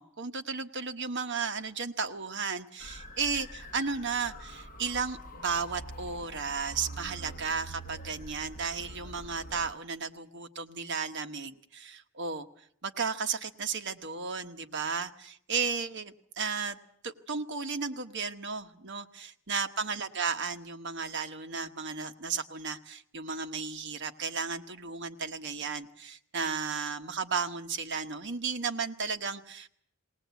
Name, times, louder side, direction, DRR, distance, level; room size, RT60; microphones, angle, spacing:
voice 1, 0.0-12.5 12.8-16.8 17.0-29.7, right 5 dB, 50° right, 7 dB, 1.2 m, -34 dB
sound 1, 2.8-9.7, equal, 35° left, 1.2 m, -45 dB
19.5 x 19.0 x 8.3 m, 0.65 s
head